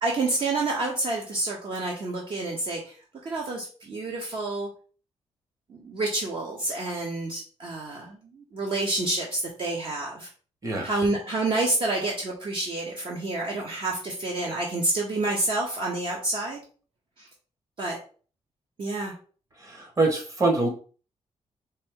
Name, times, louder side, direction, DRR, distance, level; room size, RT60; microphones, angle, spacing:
voice 1, 0.0-2.9 3.2-4.7 5.7-10.3 10.8-16.6 17.2-17.3 17.8-18.0 18.8-19.1, right 2 dB, 45° right, -2 dB, 1.0 m, -28 dB
voice 2, 10.6-11.1 19.6-20.7, right 2 dB, 30° right, 2 dB, 1.4 m, -25 dB
4.2 x 3.4 x 3.7 m, 0.39 s
wide cardioid pair, 145°, 11 cm